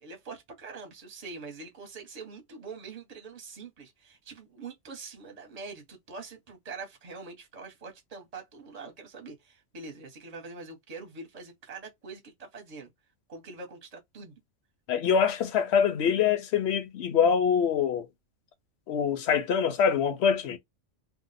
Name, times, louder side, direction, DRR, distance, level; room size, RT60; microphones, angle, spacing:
voice 1, 0.0-12.9 13.3-14.4, right 4 dB, 35° right, 0.9 m, -44 dB
voice 2, 14.9-18.1 18.9-20.6, left 7 dB, 65° left, 0.8 m, -24 dB
2.6 x 2.1 x 3.9 m
omnidirectional pair, 1.3 m